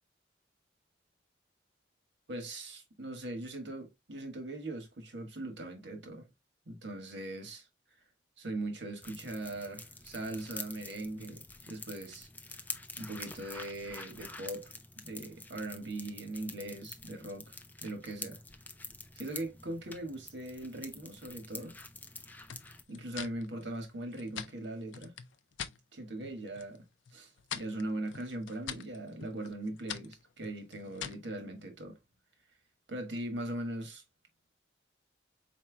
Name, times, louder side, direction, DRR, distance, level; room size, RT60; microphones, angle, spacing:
voice 1, 2.3-6.3 6.7-7.7 8.4-12.3 13.0-14.7 15.0-18.4 19.1-21.8 22.9-25.1 25.9-26.8 27.1-32.0 32.9-34.0, right 1 dB, 75° right, 1.4 m, -40 dB
sound 1, 9.0-22.8, left 3 dB, 10° left, 0.4 m, -47 dB
sound 2, 22.5-25.8 26.2-26.8 27.0-31.3, left 8 dB, 90° left, 0.5 m, -44 dB
4.4 x 4.3 x 2.2 m
head